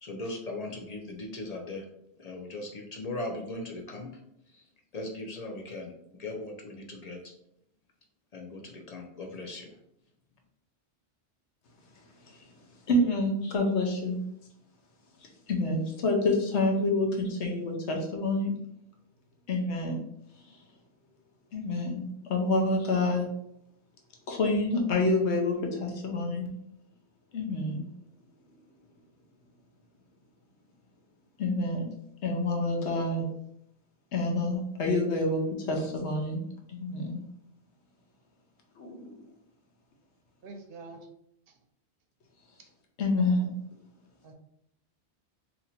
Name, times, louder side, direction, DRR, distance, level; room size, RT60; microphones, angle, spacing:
voice 1, 0.0-1.9 2.2-4.1 4.5-4.6 4.9-5.9 6.2-7.3 8.3-9.7, left 2 dB, 40° left, 2 dB, 0.7 m, -38 dB
voice 2, 12.9-14.2 15.5-18.5 19.5-20.0 21.5-23.3 24.3-26.5 27.3-27.9 31.4-31.9 32.2-33.3 34.1-36.4 36.7-37.2 38.8-39.2 43.0-43.5, left 2 dB, 85° left, 1 dB, 1.1 m, -28 dB
voice 3, 40.4-41.1 42.6-42.7 44.2-44.3, right 3 dB, 65° right, 4 dB, 0.7 m, -45 dB
2.9 x 2.6 x 4.2 m, 0.74 s
omnidirectional pair, 1.1 m